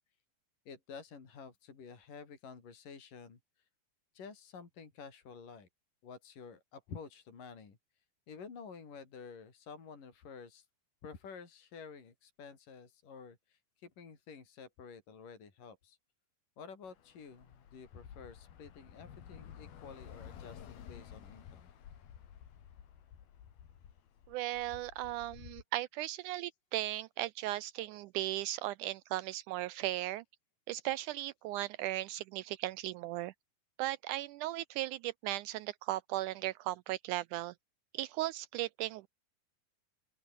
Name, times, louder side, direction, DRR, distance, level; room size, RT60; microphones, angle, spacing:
voice 1, 0.7-3.4 4.1-5.7 6.0-7.8 8.3-10.7 11.0-16.0 16.6-21.7, left 5 dB, 65° left, 5.9 m, -50 dB
Bus / Traffic noise roadway noise, 16.8-25.6, left 9 dB, 90° left, 4.5 m, -53 dB
voice 2, 24.3-30.2 30.7-33.3 33.8-37.5 37.9-39.1, right 16 dB, 85° right, 1.7 m, -37 dB
open air
omnidirectional pair, 4.2 m